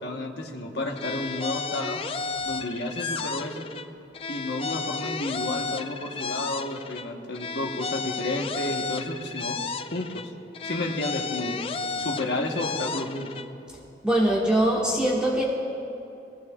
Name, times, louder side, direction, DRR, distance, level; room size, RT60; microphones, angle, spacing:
voice 1, 0.0-2.0 2.4-3.6 4.3-9.6 9.9-10.3 10.6-11.6 12.0-13.3, left 2 dB, 75° left, 1 dB, 1.2 m, -31 dB
sound 1, 1.0-3.9 4.1-7.1 7.3-10.3 10.5-13.5, left 4 dB, 30° left, 0.3 m, -33 dB
voice 2, 14.0-15.4, right 1 dB, 5° right, -6 dB, 1.6 m, -22 dB
21.5 x 15.5 x 2.4 m, 2.7 s
head